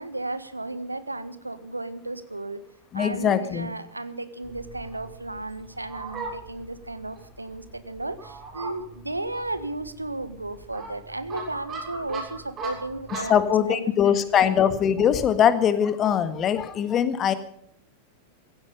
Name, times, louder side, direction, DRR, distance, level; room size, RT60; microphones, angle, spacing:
voice 1, 0.0-2.6 2.9-14.5, right 2 dB, 85° right, 13 dB, 1.3 m, -34 dB
voice 2, 2.9-3.7 13.3-17.3, left 9 dB, 30° left, 12 dB, 1.6 m, -21 dB
Fowl, 4.4-13.5, right 3 dB, 30° right, 6.8 m, -39 dB
16.0 x 16.0 x 5.3 m, 0.67 s
figure-of-eight pair, 90°, 0 cm